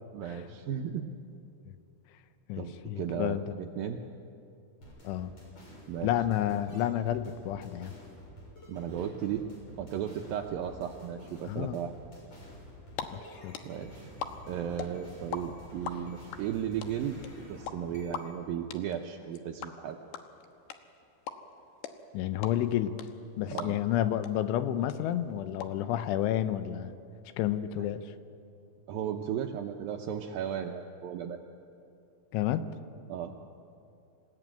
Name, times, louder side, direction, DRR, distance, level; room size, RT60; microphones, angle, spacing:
voice 1, 0.1-1.1 2.6-4.0 5.9-6.1 8.7-9.4 9.8-11.9 13.7-14.1 14.5-20.0 23.5-23.8 27.8-27.9 28.9-31.4 33.1-33.4, right 9 dB, 85° right, 3 dB, 2.0 m, -35 dB
voice 2, 2.5-3.4 5.0-5.3 6.0-7.9 11.5-11.8 13.1-13.6 22.1-23.0 23.4-26.9 27.4-28.1 32.3-32.7, left 12 dB, 90° left, 11 dB, 3.3 m, -30 dB
sound 1, 4.8-18.3, equal, 35° left, 7.8 m, -50 dB
sound 2, 12.8-13.0 13.3-15.4 15.7-24.0 24.2-24.3 24.6-25.7, left 9 dB, 70° left, 2.9 m, -39 dB
27.0 x 17.0 x 9.0 m, 2.6 s
omnidirectional pair, 5.4 m